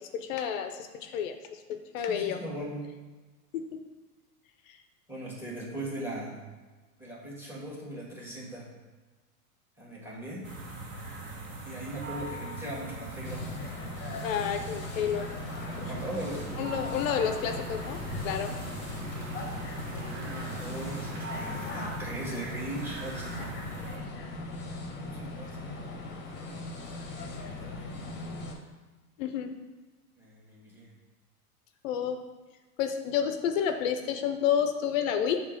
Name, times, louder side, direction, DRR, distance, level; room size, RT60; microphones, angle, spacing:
voice 1, 0.0-1.4 1.7-2.4 3.5-3.6 14.2-15.3 15.8-15.9 16.6-18.5 29.2-29.5 31.8-32.2 32.8-35.4, left 8 dB, 55° left, 7 dB, 0.7 m, -30 dB
voice 2, 2.1-3.0 5.1-6.4 7.0-8.7 9.8-10.5 11.6-13.8 15.7-16.8 18.7-19.0 19.8-24.1 25.0-26.1 26.4-28.1 30.2-30.9, right 1 dB, 5° right, -4 dB, 1.6 m, -40 dB
sound 1, 10.4-24.0, right 1 dB, 25° right, 1.1 m, -41 dB
sound 2, 13.2-28.5, left 2 dB, 25° left, 1.0 m, -39 dB
sound 3, 15.7-21.9, equal, 45° right, 1.7 m, -44 dB
6.5 x 3.0 x 5.1 m, 1.3 s
hypercardioid pair, 110°, 47 cm